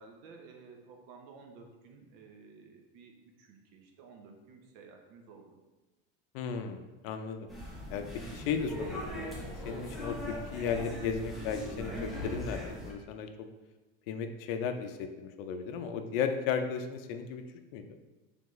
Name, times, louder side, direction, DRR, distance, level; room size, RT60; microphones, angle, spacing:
voice 1, 0.0-5.6, right 4 dB, 60° right, 3 dB, 0.8 m, -54 dB
voice 2, 6.3-7.5 7.9-13.3 14.1-17.4 17.7-17.8, left 6 dB, 70° left, 7 dB, 0.5 m, -35 dB
sound 1, 7.5-12.9, equal, ahead, 0.4 m, -40 dB
3.8 x 3.4 x 3.1 m, 1.1 s
cardioid pair, 165°, 29 cm